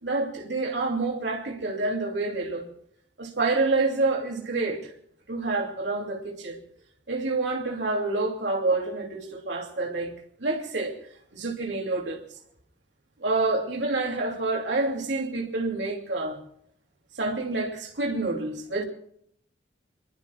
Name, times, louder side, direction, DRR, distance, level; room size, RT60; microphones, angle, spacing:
voice 1, 0.0-2.7 3.2-4.9 5.3-6.6 7.1-11.0 11.3-12.2 13.2-16.4 17.2-18.8, right 3 dB, 80° right, 2.8 m, -28 dB
27.0 x 22.0 x 2.4 m
head